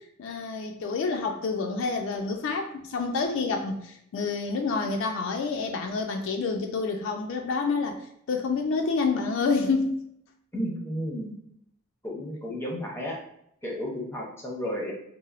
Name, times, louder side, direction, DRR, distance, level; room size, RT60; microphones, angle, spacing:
voice 1, 0.2-8.0 8.3-10.0, left 4 dB, 60° left, 3 dB, 0.3 m, -28 dB
voice 2, 10.5-11.4 12.0-13.2 13.6-14.9, equal, 10° left, -2 dB, 0.6 m, -32 dB
4.1 x 2.0 x 2.4 m, 0.73 s
head